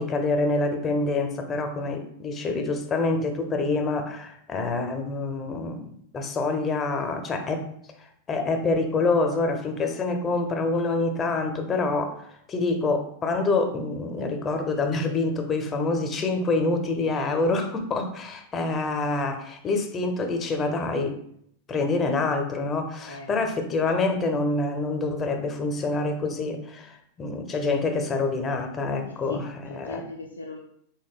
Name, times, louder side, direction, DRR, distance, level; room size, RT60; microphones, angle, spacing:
voice 1, 0.0-7.6 8.3-12.1 12.5-21.2 21.7-29.5 29.7-30.0, left 3 dB, 25° left, 5 dB, 0.5 m, -26 dB
voice 2, 23.1-23.4 29.0-30.6, left 3 dB, 85° left, 1 dB, 0.3 m, -39 dB
3.6 x 2.2 x 3.5 m, 0.70 s
figure-of-eight pair, 95°, 0 cm